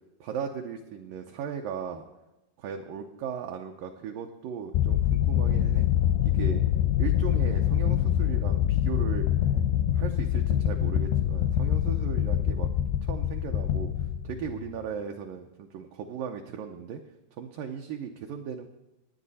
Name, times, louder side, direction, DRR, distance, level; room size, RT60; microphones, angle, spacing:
voice 1, 0.2-2.1 2.6-5.9 6.2-6.6 7.0-9.3 9.9-12.7 13.0-13.9 14.2-17.0 17.4-18.7, right 7 dB, 80° right, 3 dB, 2.0 m, -37 dB
sound 1, 4.7-14.8, left 11 dB, 85° left, 2.6 m, -25 dB
17.5 x 9.8 x 4.1 m, 1.0 s
omnidirectional pair, 4.7 m